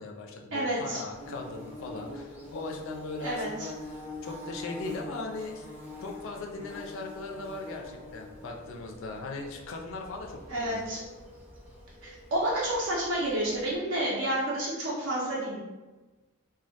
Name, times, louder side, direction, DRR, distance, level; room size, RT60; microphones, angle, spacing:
voice 1, 0.0-5.7 6.0-10.9, left 3 dB, 60° left, 1 dB, 0.4 m, -39 dB
voice 2, 0.5-1.0 3.2-3.7 10.5-11.0 12.0-15.6, right 1 dB, 55° right, -5 dB, 0.5 m, -30 dB
Bird / Buzz, 1.1-13.8, left 1 dB, 10° right, 0.5 m, -45 dB
2.1 x 2.1 x 2.7 m, 1.2 s
head